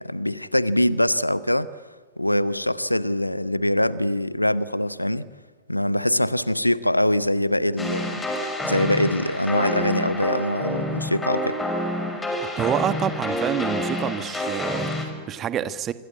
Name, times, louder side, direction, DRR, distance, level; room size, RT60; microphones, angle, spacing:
voice 1, 0.0-1.7 2.2-5.3 5.7-11.6, left 1 dB, 85° left, 0.9 m, -23 dB
sound 1, 7.8-15.0, left 1 dB, 10° left, 6.1 m, -28 dB
voice 2, 12.4-15.9, right 9 dB, 30° right, 1.5 m, -27 dB
26.0 x 25.5 x 8.5 m
figure-of-eight pair, 90°, 0 cm